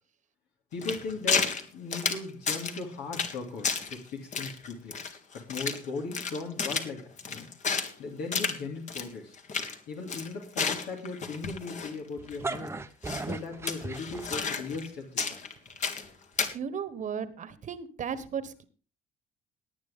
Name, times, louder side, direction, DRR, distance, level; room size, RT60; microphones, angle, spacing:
voice 1, 0.7-4.9 5.3-7.5 8.0-9.3 9.9-12.7 13.2-15.4, left 4 dB, 80° left, 1 dB, 3.1 m, -38 dB
sound 1, 0.8-1.6 1.9-2.8 3.1-3.4 3.6-4.0 4.3-5.8 6.1-7.9 8.3-8.6 8.9-9.1 9.3-9.7 10.1-11.9 12.3-12.4 13.1-13.3 13.7-14.9 15.2-16.1 16.4-16.5, left 5 dB, 45° left, 1.9 m, -31 dB
sound 2, 12.2-14.8, right 3 dB, 15° right, 0.9 m, -37 dB
voice 2, 16.4-18.6, right 7 dB, 45° right, 14 dB, 1.4 m, -35 dB
18.0 x 9.4 x 3.7 m, 0.36 s
cardioid pair, 110°, 17 cm